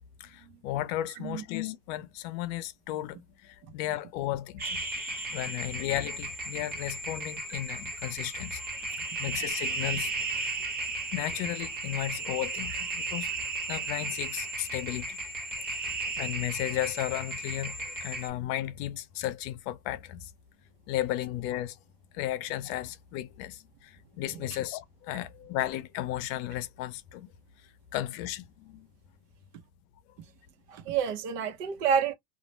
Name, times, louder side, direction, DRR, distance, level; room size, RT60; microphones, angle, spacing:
voice 1, 0.2-4.8 5.3-8.6 9.0-10.6 11.1-13.3 13.7-15.2 15.7-20.3 20.9-21.8 22.1-27.3 27.9-28.9 30.8-31.0, left 13 dB, 60° left, 0.6 m, -34 dB
sound 1, 4.6-18.3, right 2 dB, 20° right, 0.9 m, -35 dB
voice 2, 30.7-32.1, right 7 dB, 80° right, 0.9 m, -29 dB
2.4 x 2.0 x 3.0 m
supercardioid pair, 125°, 48 cm